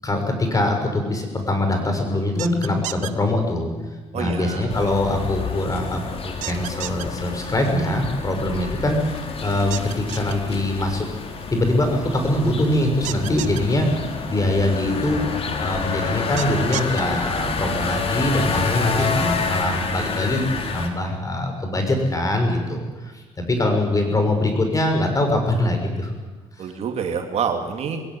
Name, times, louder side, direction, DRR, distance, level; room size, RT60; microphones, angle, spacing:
voice 1, 0.0-3.7 4.1-15.2 15.6-26.1 26.6-26.7, left 1 dB, 30° left, 5 dB, 6.5 m, -23 dB
sound 1, 2.4-3.1 6.4-7.1 9.7-10.3 13.0-13.6 16.4-17.0, right 15 dB, 80° right, 1.0 m, -31 dB
voice 2, 4.1-4.7 18.5-19.1 26.6-28.0, right 6 dB, 60° right, 4 dB, 3.1 m, -27 dB
sound 2, 4.7-20.9, left 4 dB, 50° left, 3.7 m, -28 dB
22.0 x 17.0 x 9.6 m, 1.3 s
supercardioid pair, 75°, 12 cm